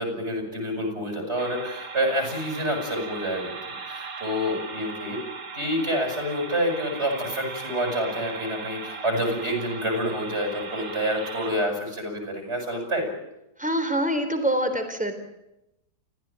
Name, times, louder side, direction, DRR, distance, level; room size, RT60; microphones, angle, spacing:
voice 1, 0.0-3.5 3.8-5.2 5.5-13.1, equal, 35° right, 3 dB, 8.0 m, -28 dB
sound 1, 1.4-11.5, right 4 dB, 55° right, 2.4 m, -38 dB
voice 2, 13.6-15.1, right 1 dB, 5° right, 6 dB, 3.7 m, -25 dB
29.0 x 15.5 x 9.1 m, 0.89 s
omnidirectional pair, 1.9 m